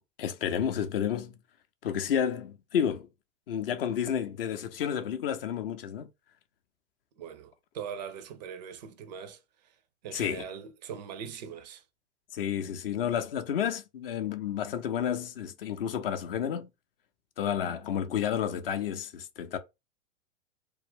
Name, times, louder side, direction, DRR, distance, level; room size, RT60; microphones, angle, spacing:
voice 1, 0.2-1.4 1.8-3.1 3.5-6.1 10.1-10.4 12.3-16.7 17.4-19.6, left 9 dB, 50° left, 0.5 m, -31 dB
voice 2, 7.2-9.4 10.0-11.8, right 7 dB, 40° right, 0.4 m, -41 dB
2.3 x 2.1 x 3.5 m
figure-of-eight pair, 95°, 36 cm